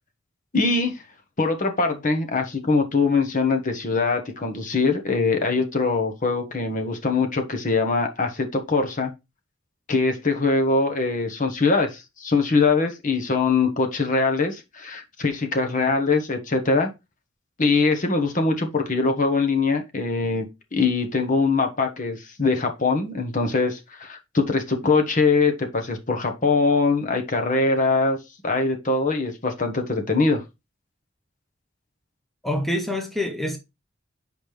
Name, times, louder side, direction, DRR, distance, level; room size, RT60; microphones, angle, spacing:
voice 1, 0.5-1.0 1.4-9.1 9.9-16.9 17.6-28.2 28.4-30.4, left 4 dB, 45° left, 1.1 m, -22 dB
voice 2, 32.4-33.6, left 1 dB, ahead, 1.0 m, -26 dB
7.3 x 5.2 x 3.1 m
head